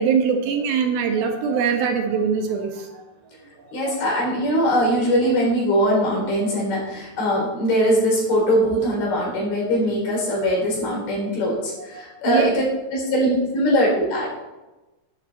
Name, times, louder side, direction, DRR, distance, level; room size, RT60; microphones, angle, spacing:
voice 1, 0.0-3.0 3.8-4.0 11.9-12.5, right 6 dB, 70° right, 4 dB, 3.0 m, -23 dB
voice 2, 3.7-12.6 12.9-14.3, equal, 70° left, -3 dB, 6.3 m, -21 dB
12.0 x 10.5 x 4.2 m, 1.1 s
omnidirectional pair, 4.6 m